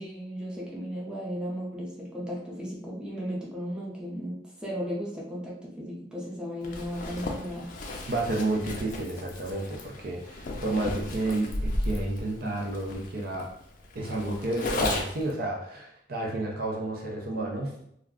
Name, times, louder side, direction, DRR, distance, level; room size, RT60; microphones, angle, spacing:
voice 1, 0.0-7.7, equal, 5° right, -5 dB, 0.6 m, -35 dB
Zipper (clothing), 6.6-15.3, left 1 dB, 45° left, 0.4 m, -34 dB
voice 2, 8.1-13.5 13.9-17.7, right 2 dB, 55° right, -1 dB, 0.5 m, -31 dB
2.4 x 2.1 x 3.5 m, 0.71 s
head